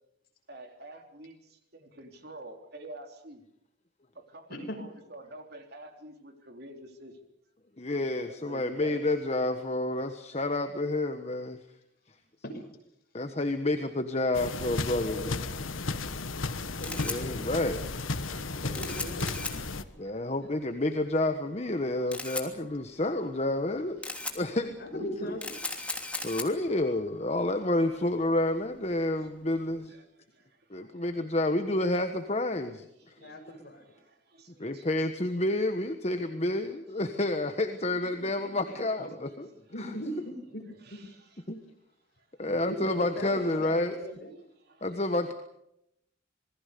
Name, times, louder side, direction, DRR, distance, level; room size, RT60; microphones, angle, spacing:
voice 1, 0.5-1.4 1.7-3.4 4.2-7.1 8.4-9.0 20.1-20.3 26.0-26.1 30.8-30.9 33.2-33.3 34.1-34.9 44.7-44.8, right 1 dB, 55° right, 5 dB, 3.6 m, -47 dB
voice 2, 4.5-4.8 12.4-12.6 15.0-15.3 16.8-17.4 18.6-19.3 24.8-25.5 33.2-33.9 37.8-39.1 39.7-40.6 40.9-41.0 42.5-44.3, equal, 50° left, 3 dB, 6.4 m, -39 dB
voice 3, 7.8-11.6 13.1-15.4 17.0-17.8 18.2-18.5 20.0-24.0 24.3-25.3 26.2-29.9 30.7-33.1 34.6-39.5 39.8-39.9 41.5-41.6 42.4-44.0 44.8-45.3, left 1 dB, 35° left, 7 dB, 1.4 m, -29 dB
sound 1, 14.3-19.8, left 3 dB, 90° left, 1.5 m, -34 dB
Camera, 16.5-29.8, left 2 dB, 5° left, 3.0 m, -41 dB
27.0 x 20.5 x 6.9 m, 0.80 s
head